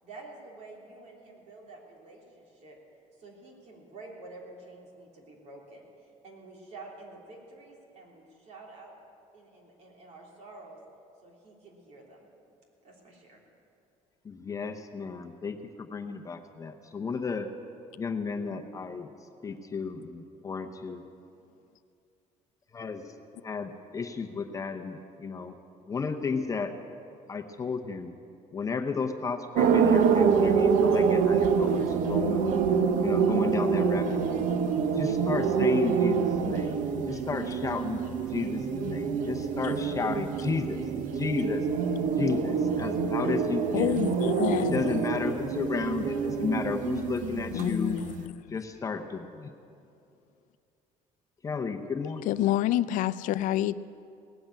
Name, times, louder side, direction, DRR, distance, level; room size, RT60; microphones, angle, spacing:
voice 1, 0.0-2.8 3.2-8.9 9.3-10.8 11.2-12.3 12.8-13.4, right 2 dB, 60° right, -2 dB, 3.4 m, -49 dB
voice 2, 14.2-17.5 17.9-19.1 19.4-21.0 22.7-23.1 23.4-25.6 25.8-26.8 27.3-28.1 28.5-32.7 33.0-34.5 34.9-36.8 37.1-38.0 38.3-40.9 41.1-41.7 42.2-44.1 44.6-48.0 48.5-49.5 51.4-52.3, left 5 dB, 25° left, 5 dB, 0.8 m, -33 dB
sound 1, 29.6-48.2, right 6 dB, 75° right, 0.9 m, -26 dB
voice 3, 43.7-44.8 47.5-48.3 52.3-53.8, left 13 dB, 75° left, 16 dB, 0.4 m, -27 dB
18.0 x 7.9 x 8.9 m, 2.6 s
cardioid pair, 140°, 13 cm